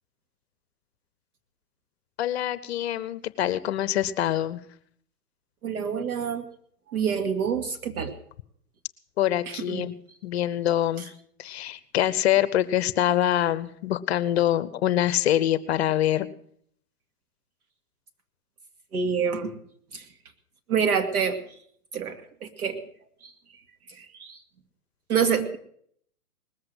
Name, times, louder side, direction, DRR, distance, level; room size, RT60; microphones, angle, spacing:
voice 1, 2.2-4.6 9.2-9.9 10.2-11.1 11.4-16.3, left 12 dB, 45° left, 16 dB, 0.8 m, -25 dB
voice 2, 5.6-6.5 6.9-8.1 9.5-9.9 11.0-11.1 18.9-19.6 19.9-20.1 20.7-21.4 21.9-22.8 23.2-23.3 23.9-24.4 25.1-25.6, right 6 dB, 70° right, 7 dB, 2.3 m, -27 dB
20.0 x 7.8 x 7.9 m, 0.63 s
hypercardioid pair, 140°, 46 cm